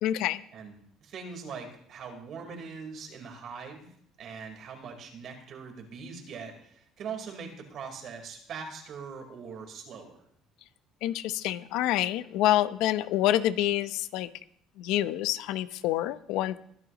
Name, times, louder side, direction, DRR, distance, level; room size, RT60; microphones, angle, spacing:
voice 1, 0.0-0.4 11.0-14.3 14.8-16.6, left 13 dB, 75° left, 14 dB, 0.8 m, -27 dB
voice 2, 1.0-3.9 4.2-10.2, right 5 dB, 55° right, 3 dB, 4.2 m, -41 dB
22.5 x 11.0 x 3.1 m, 0.66 s
supercardioid pair, 85°, 0 cm